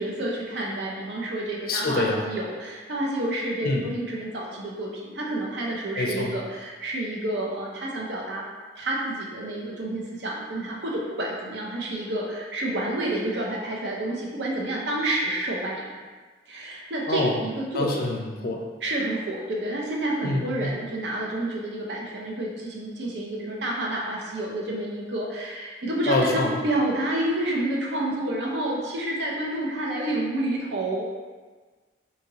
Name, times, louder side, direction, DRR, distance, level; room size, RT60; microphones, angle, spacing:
voice 1, 0.0-8.4 8.8-16.0 16.5-17.9 18.8-31.2, right 1 dB, 75° right, -3 dB, 0.5 m, -29 dB
voice 2, 1.7-2.3 3.6-3.8 6.0-6.3 17.1-17.4 17.7-18.6 20.2-20.7 26.1-26.5, left 2 dB, 55° left, 1 dB, 0.4 m, -26 dB
2.8 x 2.8 x 2.8 m, 1.4 s
head